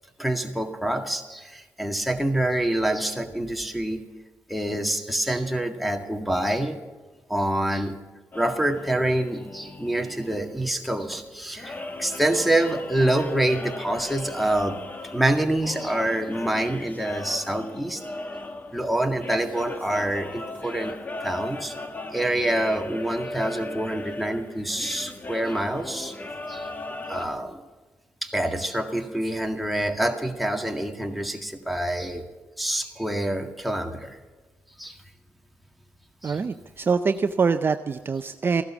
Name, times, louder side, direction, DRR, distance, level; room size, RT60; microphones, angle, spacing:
voice 1, 0.2-4.0 4.5-6.8 7.3-8.0 8.3-14.8 15.1-18.0 18.7-20.9 21.2-21.7 22.1-26.1 26.5-26.7 27.1-27.6 28.2-32.3 32.6-34.2 34.8-35.0 36.2-36.4, right 1 dB, ahead, 3 dB, 1.8 m, -26 dB
sound 1, 8.3-27.3, left 2 dB, 30° left, 1.3 m, -38 dB
voice 2, 36.2-38.6, right 5 dB, 40° right, 9 dB, 0.6 m, -24 dB
15.5 x 12.0 x 7.3 m, 1.3 s
cardioid pair, 80°, 6 cm